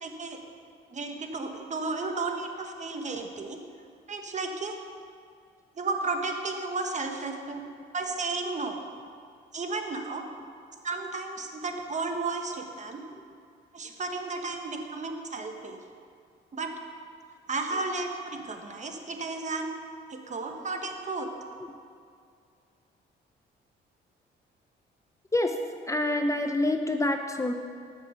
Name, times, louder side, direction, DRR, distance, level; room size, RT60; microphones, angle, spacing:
voice 1, 0.0-0.4 0.9-3.6 4.1-4.8 5.8-7.6 7.9-8.8 9.5-10.2 10.8-13.0 13.7-15.8 16.5-16.7 17.5-19.8 20.1-21.3, right 3 dB, 35° right, 4 dB, 1.3 m, -33 dB
voice 2, 25.9-27.5, left 1 dB, 15° left, 5 dB, 0.6 m, -27 dB
13.0 x 6.2 x 5.9 m, 2.4 s
cardioid pair, 90°, 20 cm